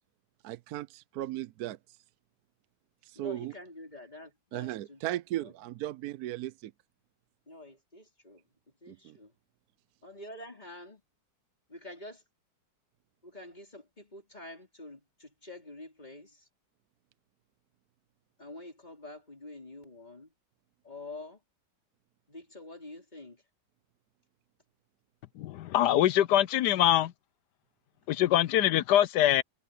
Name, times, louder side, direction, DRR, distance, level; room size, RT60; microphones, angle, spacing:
voice 1, 0.4-2.0 3.0-3.5 4.5-6.7 8.9-9.2, right 14 dB, 70° right, 1.0 m, -36 dB
voice 2, 3.1-5.0 5.4-5.5 7.5-8.4 8.8-9.3 10.0-11.0 11.7-12.2 13.2-16.5 18.4-20.3 20.8-21.4 22.3-23.4, left 2 dB, 25° left, 4.6 m, -47 dB
voice 3, 25.4-27.1 28.1-29.4, left 12 dB, 75° left, 1.1 m, -24 dB
omnidirectional pair, 1.9 m